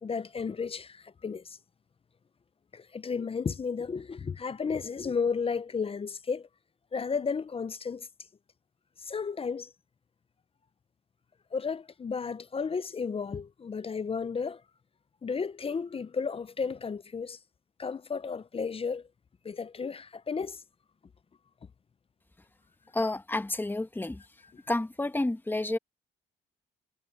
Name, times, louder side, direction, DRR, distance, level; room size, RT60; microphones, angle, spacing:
voice 1, 0.0-1.6 2.7-6.5 6.9-8.1 9.0-9.7 11.5-14.6 15.2-17.4 17.8-19.1 19.4-20.6, left 5 dB, 30° left, 0.6 m, -33 dB
voice 2, 22.9-24.2 24.7-25.8, left 2 dB, 10° left, 1.3 m, -30 dB
cardioid pair, 90°, 20 cm